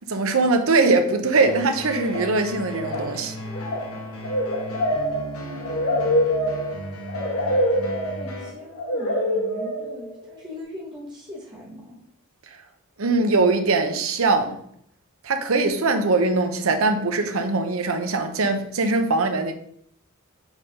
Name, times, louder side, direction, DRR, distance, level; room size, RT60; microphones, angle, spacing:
voice 1, 0.1-3.3 13.0-14.6 15.2-19.5, right 3 dB, 70° right, 0.7 m, -21 dB
sound 1, 1.2-1.7 1.9-2.4 2.6-10.3, equal, 60° left, 1.8 m, -26 dB
sound 2, 1.4-8.5, equal, 80° left, 1.2 m, -36 dB
voice 2, 4.9-6.0 8.1-12.0, left 1 dB, 20° right, 1.0 m, -40 dB
4.8 x 3.8 x 5.4 m
head